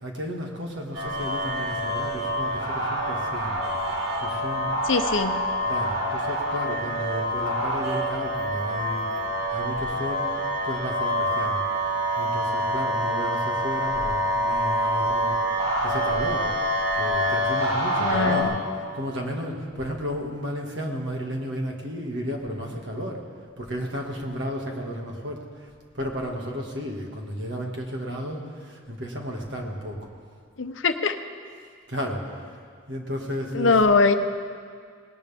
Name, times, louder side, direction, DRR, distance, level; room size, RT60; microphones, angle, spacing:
voice 1, 0.0-3.6 4.2-4.7 5.7-9.0 9.5-10.2 10.6-11.6 12.2-15.3 15.8-16.5 17.0-18.5 18.9-23.2 23.6-25.4 25.9-30.0 31.9-32.2 32.9-34.0, equal, 60° right, 0 dB, 2.0 m, -33 dB
sound 1, 0.9-18.4, equal, 90° right, 3.9 m, -26 dB
voice 2, 4.9-5.4 18.0-18.5 30.6-31.2 33.5-34.1, left 4 dB, 70° left, 8 dB, 0.8 m, -21 dB
19.0 x 17.5 x 3.6 m, 2.1 s
head